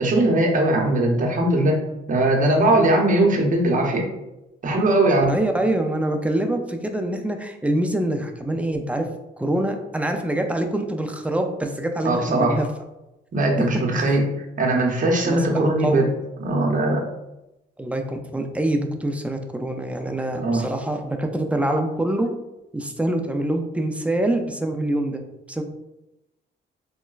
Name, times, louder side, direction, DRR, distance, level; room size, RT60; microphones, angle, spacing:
voice 1, 0.0-1.8 2.1-4.1 4.6-5.3 12.0-12.6 13.3-14.2 14.6-16.1 16.4-17.0 20.4-20.6, right 1 dB, 40° right, 0 dB, 0.8 m, -20 dB
voice 2, 5.3-9.1 9.4-12.7 13.6-13.7 13.9-14.2 15.2-16.0 17.8-22.3 22.7-25.2 25.5-25.6, right 1 dB, 5° right, 4 dB, 0.3 m, -25 dB
3.8 x 2.1 x 2.3 m, 0.93 s
cardioid pair, 90°, 20 cm